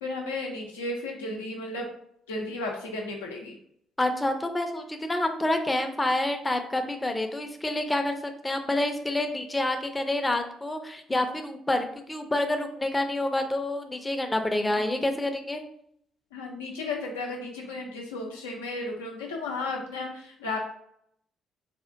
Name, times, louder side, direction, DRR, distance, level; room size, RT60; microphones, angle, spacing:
voice 1, 0.0-1.9 2.3-3.6 14.7-15.0 16.3-20.6, left 2 dB, 75° left, 0 dB, 0.6 m, -34 dB
voice 2, 4.0-8.2 8.4-15.6, left 1 dB, 15° left, 6 dB, 0.5 m, -28 dB
4.2 x 2.4 x 2.5 m, 0.70 s
figure-of-eight pair, 45°, 0 cm